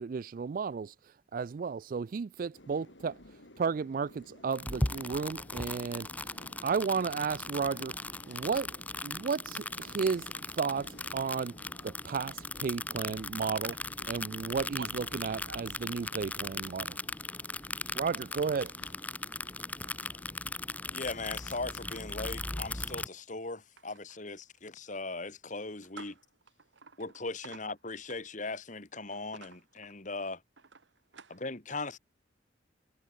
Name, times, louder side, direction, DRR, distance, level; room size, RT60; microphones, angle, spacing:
voice 1, 0.0-6.4 6.6-7.9 8.3-10.3 10.6-11.5 11.8-13.7 14.1-17.0 17.9-18.7, right 5 dB, 45° right, 0.3 m, -33 dB
sound 1, 2.5-21.5, left 1 dB, 70° left, 7.7 m, -56 dB
sound 2, 4.5-23.1, left 2 dB, 10° left, 0.5 m, -38 dB
voice 2, 19.8-20.2 21.9-22.1 26.0-26.2 26.6-27.6 29.1-30.0 30.7-31.4, right 4 dB, 70° right, 1.6 m, -50 dB
voice 3, 20.9-26.1 27.0-30.4 31.3-32.0, left 3 dB, 40° left, 2.0 m, -39 dB
head